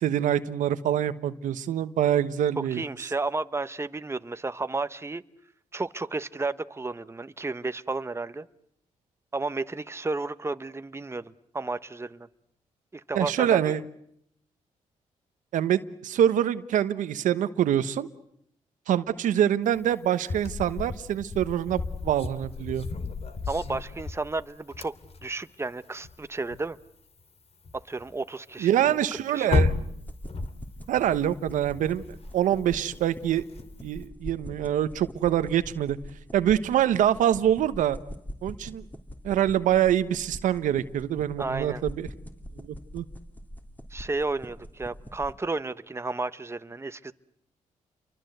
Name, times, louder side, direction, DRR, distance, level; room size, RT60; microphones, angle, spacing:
voice 1, 0.0-2.8 13.1-13.8 15.5-18.1 18.9-22.9 28.6-29.7 30.9-32.0 32.3-33.4 33.8-36.0 36.3-38.0 38.4-38.8 39.2-42.1 42.6-43.0, right 10 dB, 85° right, 12 dB, 1.1 m, -25 dB
voice 2, 2.7-5.2 5.7-8.5 9.3-12.3 12.9-13.7 23.5-24.9 25.2-26.8 27.9-29.0 29.3-29.5 41.4-41.8 43.9-47.1, right 3 dB, 20° right, 12 dB, 1.1 m, -32 dB
sound 1, 19.7-26.9 27.2-27.3 27.6-28.2 28.5-28.6 28.8-34.0, left 3 dB, 55° left, 2.6 m, -33 dB
sound 2, 30.0-45.3, equal, 15° left, 3.2 m, -43 dB
29.5 x 24.0 x 8.0 m, 0.72 s
cardioid pair, 70°, 13 cm